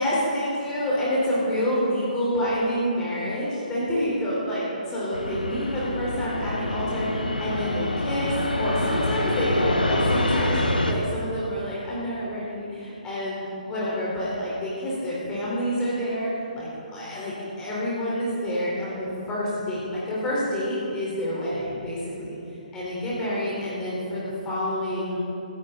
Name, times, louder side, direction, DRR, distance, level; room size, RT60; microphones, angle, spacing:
voice 1, 0.0-8.3 8.6-10.6 10.9-22.4 22.7-25.2, equal, 15° left, -8 dB, 4.4 m, -28 dB
Fixed-wing aircraft airplane, 5.1-10.9, left 1 dB, 85° left, 1.7 m, -26 dB
19.5 x 14.0 x 4.1 m, 2.8 s
figure-of-eight pair, 135°, 5 cm